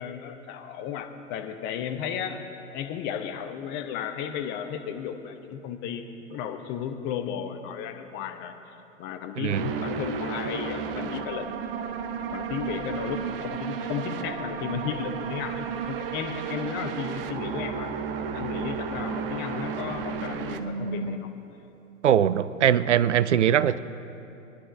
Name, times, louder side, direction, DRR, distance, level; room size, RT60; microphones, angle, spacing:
voice 1, 0.0-2.4 2.7-8.5 9.0-11.5 12.3-21.3, left 8 dB, 30° left, 7 dB, 1.0 m, -34 dB
sound 1, 9.5-21.2, right 6 dB, 45° right, 0.9 m, -32 dB
voice 2, 22.0-23.8, right 10 dB, 65° right, 16 dB, 0.5 m, -21 dB
23.5 x 11.0 x 2.7 m, 2.8 s
figure-of-eight pair, 105°, 39 cm